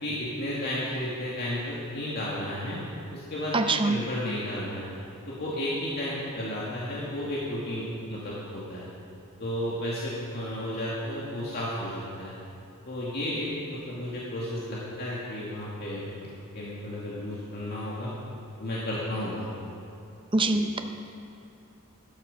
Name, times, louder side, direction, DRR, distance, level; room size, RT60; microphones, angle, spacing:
voice 1, 0.0-2.8 3.1-4.9 5.3-8.9 9.4-12.3 12.9-18.1 18.6-19.5 20.5-20.6, left 1 dB, 45° left, -7 dB, 2.2 m, -33 dB
voice 2, 3.5-4.0 20.3-20.8, right 2 dB, 25° right, 6 dB, 0.7 m, -24 dB
13.0 x 12.0 x 5.3 m, 2.7 s
head